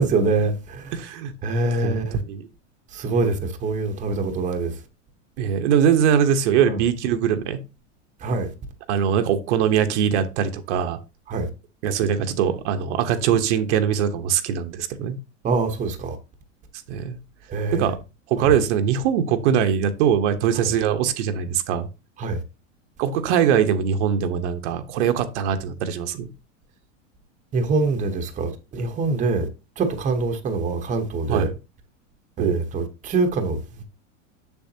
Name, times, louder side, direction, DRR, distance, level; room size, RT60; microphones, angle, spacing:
voice 1, 0.0-0.9 1.4-2.2 2.9-4.7 6.6-6.8 8.2-8.5 11.3-11.5 15.4-16.2 17.5-17.9 18.4-18.5 22.2-22.4 27.5-29.5 29.8-31.5 32.4-33.8, right 3 dB, 20° right, 1.0 m, -24 dB
voice 2, 0.9-1.3 1.8-2.0 2.3-2.5 5.4-7.6 8.9-11.0 11.8-15.2 16.9-17.2 17.7-18.0 18.3-21.9 23.0-26.3 31.3-31.5 32.4-32.6, right 8 dB, 65° right, 1.1 m, -22 dB
7.1 x 7.1 x 2.8 m
supercardioid pair, 145°, 38 cm